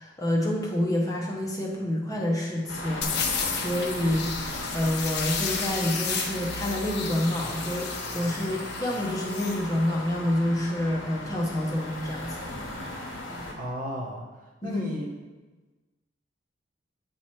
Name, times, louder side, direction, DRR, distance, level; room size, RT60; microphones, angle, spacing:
voice 1, 0.0-3.2 3.5-4.3 4.7-12.4 14.6-14.8, left 1 dB, 20° left, -2 dB, 0.8 m, -28 dB
sound 1, 2.7-13.5, left 1 dB, 85° left, 1.4 m, -37 dB
sound 2, 3.0-9.6, left 5 dB, 60° left, 0.8 m, -33 dB
voice 2, 13.5-14.2 14.6-15.1, equal, 45° right, -2 dB, 1.0 m, -33 dB
8.6 x 3.0 x 4.5 m, 1.2 s
head